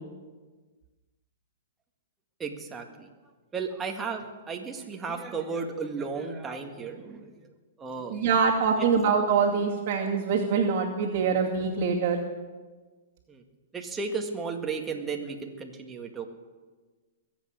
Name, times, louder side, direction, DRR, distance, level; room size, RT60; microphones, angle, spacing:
voice 1, 2.4-3.1 3.5-7.5 7.8-8.3 8.8-8.9 11.2-11.3 13.3-13.4 13.7-16.3, right 5 dB, 15° right, 3 dB, 1.9 m, -34 dB
voice 2, 8.1-12.2, right 5 dB, 45° right, -6 dB, 2.4 m, -24 dB
22.0 x 8.3 x 6.5 m, 1.4 s
hypercardioid pair, 130°, 0 cm